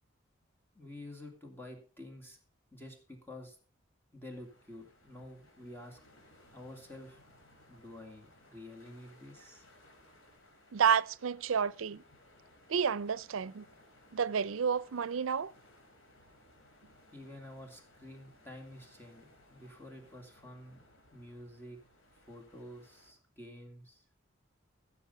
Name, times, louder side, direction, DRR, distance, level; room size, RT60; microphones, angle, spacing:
voice 1, 0.7-2.4 2.7-3.6 4.1-6.0 6.5-7.2 7.7-9.6 17.1-20.8 21.1-21.8 22.3-24.0, left 1 dB, 10° left, 2.3 m, -49 dB
sound 1, 4.3-23.1, left 1 dB, 90° left, 4.2 m, -62 dB
voice 2, 10.7-12.0 12.7-13.6 14.1-15.5, right 7 dB, 85° right, 0.5 m, -30 dB
16.5 x 7.2 x 5.4 m
head